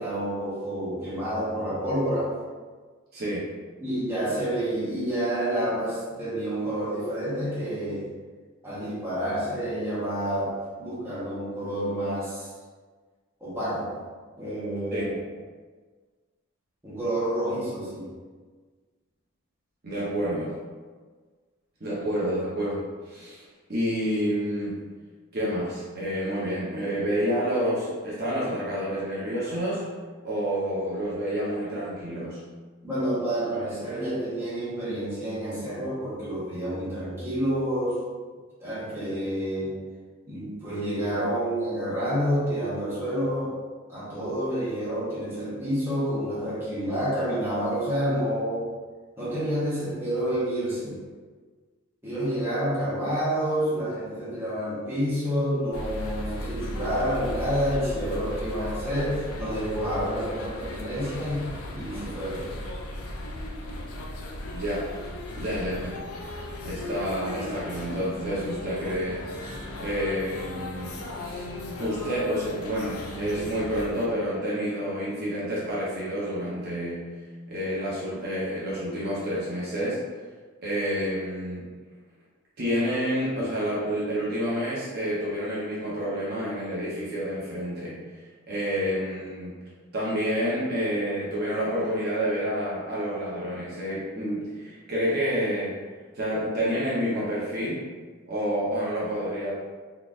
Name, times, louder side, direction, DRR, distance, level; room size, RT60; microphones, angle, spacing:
voice 1, 0.0-2.4 3.8-8.1 8.6-12.5 13.4-14.0 14.4-15.1 16.8-18.1 32.8-38.0 38.6-39.8 40.3-43.6 43.9-48.7 49.2-51.0 52.0-62.5, equal, 10° right, -10 dB, 1.1 m, -29 dB
voice 2, 3.1-3.5 14.9-15.2 19.8-20.6 21.8-23.4 23.7-24.8 25.3-29.8 30.2-32.4 64.5-64.9 65.4-66.0 66.6-69.2 69.8-77.1 77.5-80.0 80.6-81.7 82.6-88.0 88.5-89.6 89.9-95.8 96.1-97.9 98.3-99.5, equal, 45° right, -8 dB, 0.9 m, -29 dB
sound 1, 55.7-74.1, left 1 dB, 85° left, 0.5 m, -36 dB
4.0 x 3.2 x 2.5 m, 1.5 s
head